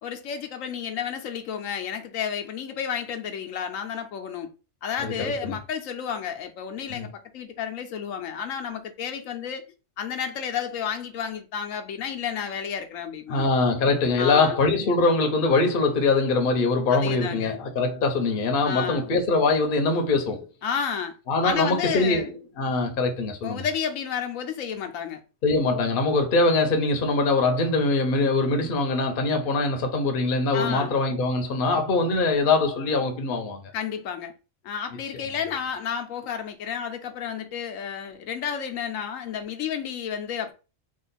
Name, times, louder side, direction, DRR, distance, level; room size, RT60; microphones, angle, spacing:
voice 1, 0.0-4.5 4.8-9.6 10.0-13.5 14.2-14.6 16.9-17.6 18.6-19.1 20.6-21.1 21.4-22.3 23.4-25.2 30.5-31.0 33.7-34.3 34.6-40.5, left 7 dB, 80° left, 1.0 m, -31 dB
voice 2, 5.0-5.5 6.9-7.0 13.3-20.5 21.3-23.6 25.4-33.6, left 3 dB, 50° left, 0.8 m, -23 dB
3.7 x 2.5 x 4.0 m
omnidirectional pair, 1.4 m